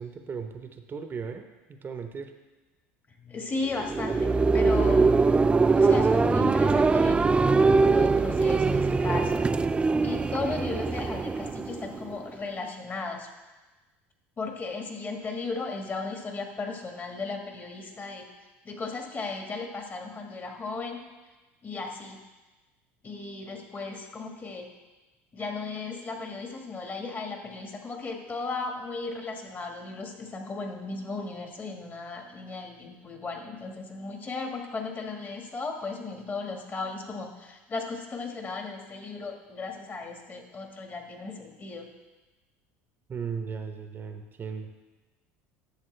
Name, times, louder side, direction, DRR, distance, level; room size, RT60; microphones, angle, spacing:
voice 1, 0.0-1.4 1.8-2.3 43.1-44.7, right 6 dB, 30° right, 7 dB, 0.9 m, -36 dB
voice 2, 3.2-5.1 5.7-9.5 9.8-13.3 14.4-18.2 18.6-21.1 21.6-22.2 23.0-24.7 25.3-41.9, left 3 dB, 30° left, 3 dB, 1.6 m, -36 dB
sound 1, 3.7-12.3, right 4 dB, 15° right, 0.3 m, -22 dB
11.5 x 7.0 x 3.3 m, 1.2 s
hypercardioid pair, 85°, 7 cm